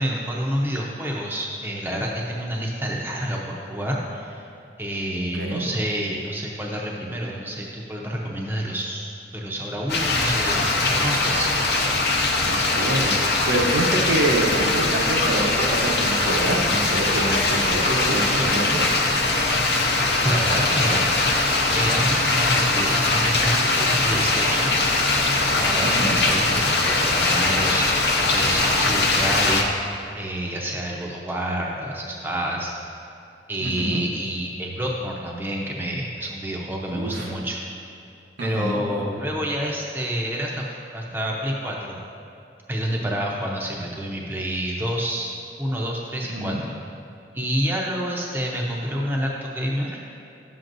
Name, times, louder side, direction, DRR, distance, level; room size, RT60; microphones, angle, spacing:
voice 1, 0.0-4.5 4.8-11.8 20.2-24.8 25.6-29.7 30.2-32.7 33.5-37.6 38.4-42.0 42.7-46.8 47.3-50.0, equal, 10° right, -2 dB, 0.7 m, -28 dB
voice 2, 5.3-5.7 12.4-13.2 13.5-19.0 25.8-26.2 33.6-34.0 36.9-37.3 38.4-38.8 46.2-46.6, right 1 dB, 85° right, -1 dB, 1.1 m, -26 dB
sound 1, 9.9-29.6, left 2 dB, 60° left, 0.8 m, -21 dB
11.0 x 7.5 x 2.6 m, 2.7 s
head